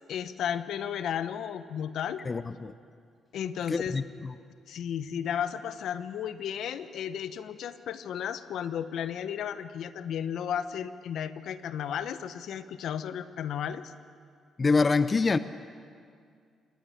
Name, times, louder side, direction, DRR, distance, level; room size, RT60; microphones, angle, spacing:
voice 1, 0.1-2.2 3.3-4.0 4.7-13.9, left 9 dB, 75° left, 12 dB, 1.0 m, -34 dB
voice 2, 2.3-2.7 3.7-4.3 14.6-15.4, left 4 dB, 30° left, 13 dB, 0.6 m, -25 dB
28.5 x 15.5 x 8.6 m, 2.2 s
cardioid pair, 90°, 0 cm